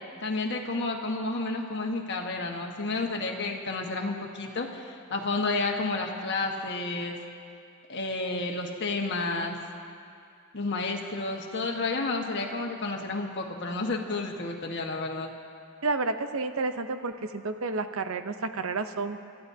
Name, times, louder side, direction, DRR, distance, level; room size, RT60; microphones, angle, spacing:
voice 1, 0.2-7.2 7.9-9.6 10.5-15.3, left 3 dB, 55° left, 1 dB, 1.4 m, -31 dB
voice 2, 15.8-19.2, right 3 dB, 70° right, 8 dB, 0.7 m, -30 dB
28.5 x 13.5 x 2.8 m, 2.4 s
head